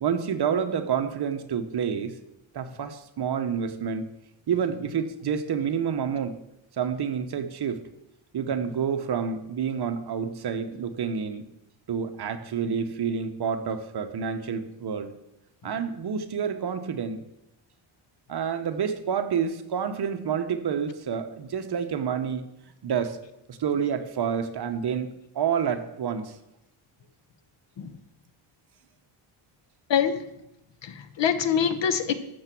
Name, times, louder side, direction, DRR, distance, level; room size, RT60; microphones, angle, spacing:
voice 1, 0.0-2.2 2.5-4.1 4.5-6.4 6.7-7.8 8.3-11.5 11.9-15.1 15.6-17.3 18.3-22.5 22.8-23.2 23.5-26.4, right 7 dB, 50° right, 8 dB, 1.1 m, -28 dB
voice 2, 30.8-32.1, left 8 dB, 60° left, 11 dB, 1.2 m, -24 dB
13.0 x 7.0 x 6.1 m, 0.86 s
cardioid pair, 115°, 49 cm